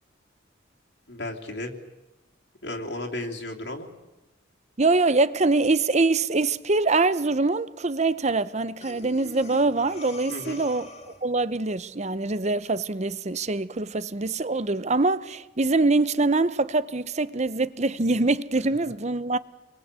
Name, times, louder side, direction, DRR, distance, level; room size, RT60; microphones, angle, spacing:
voice 1, 1.1-1.7 2.6-3.9 10.3-10.6, left 1 dB, 65° left, 3.0 m, -34 dB
voice 2, 4.8-10.9 11.2-19.4, right 3 dB, 35° right, 0.8 m, -24 dB
Breathing, 8.8-11.4, left 2 dB, 35° left, 2.3 m, -43 dB
27.0 x 22.5 x 8.3 m
head